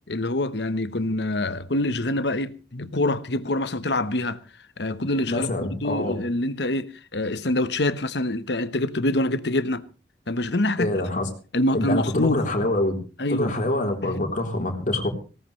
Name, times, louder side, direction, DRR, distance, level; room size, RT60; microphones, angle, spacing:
voice 1, 0.1-4.4 4.8-9.8 10.3-10.9 11.5-12.4 13.2-13.6 14.0-14.2, left 1 dB, 75° left, 1.2 m, -25 dB
voice 2, 5.3-6.2 10.8-11.3 11.7-13.0 13.3-15.1, left 1 dB, 50° left, 3.7 m, -25 dB
19.0 x 17.5 x 3.2 m
head